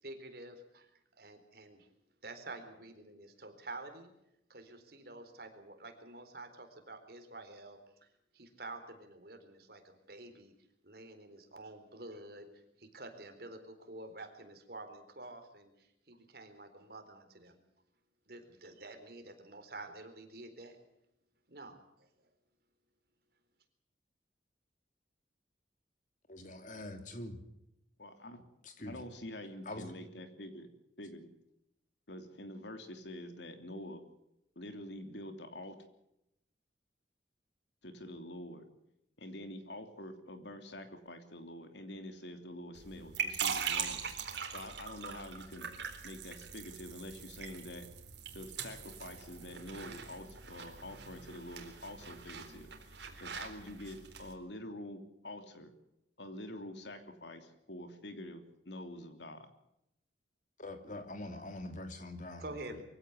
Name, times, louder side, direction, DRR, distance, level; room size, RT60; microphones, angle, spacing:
voice 1, 0.0-0.9 1.2-1.9 2.2-4.1 4.5-7.8 8.3-10.5 10.8-17.6 18.3-20.8 21.5-22.1 62.4-62.8, right 2 dB, 55° right, 7 dB, 4.1 m, -49 dB
voice 2, 26.3-27.4 28.6-29.0 29.6-29.9 60.6-62.8, left 1 dB, 45° left, 7 dB, 2.9 m, -44 dB
voice 3, 28.0-28.4 28.8-30.7 31.0-31.3 32.1-34.0 34.5-35.8 37.8-38.7 39.2-44.0 44.5-45.7 46.0-47.9 48.3-52.7 53.2-55.7 56.2-59.5, left 1 dB, 75° left, 7 dB, 3.2 m, -46 dB
sound 1, 42.8-54.3, right 6 dB, 75° right, 4.0 m, -42 dB
24.0 x 16.5 x 8.1 m, 0.83 s
head